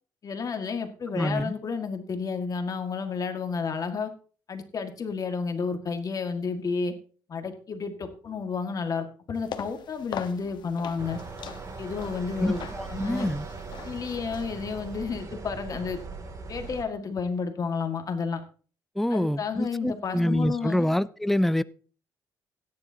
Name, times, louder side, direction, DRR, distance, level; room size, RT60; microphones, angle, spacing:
voice 1, 0.2-4.1 4.5-6.9 7.3-11.2 11.8-12.6 12.9-13.3 13.8-16.0 16.5-18.4 19.1-20.8, left 5 dB, 45° left, 1.9 m, -31 dB
voice 2, 1.1-1.5 12.4-13.5 19.0-21.6, left 1 dB, 5° left, 0.4 m, -26 dB
sound 1, 9.3-15.0, left 8 dB, 65° left, 1.2 m, -42 dB
sound 2, 11.0-16.8, right 4 dB, 40° right, 2.6 m, -39 dB
16.5 x 10.0 x 2.8 m
cardioid pair, 100°, 8 cm